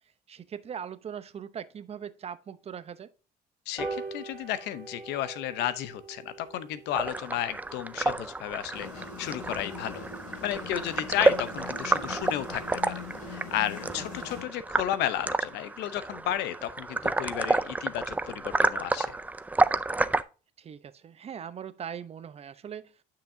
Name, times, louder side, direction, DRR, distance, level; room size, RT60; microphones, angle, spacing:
voice 1, 0.3-3.1 14.2-14.4 20.6-23.0, right 8 dB, 35° right, 0.7 m, -40 dB
voice 2, 3.7-10.0 10.4-19.2, left 12 dB, 85° left, 0.7 m, -33 dB
sound 1, 3.8-10.5 10.9-11.0 11.4-11.5 11.7-11.8 12.1-12.2 12.5-12.8 13.2-13.3, right 3 dB, 15° left, 4.7 m, -43 dB
sound 2, 6.9-20.2, right 2 dB, 10° right, 0.4 m, -30 dB
sound 3, 8.7-14.4, left 4 dB, 50° left, 2.8 m, -42 dB
9.6 x 5.9 x 2.7 m
cardioid pair, 110°, 17 cm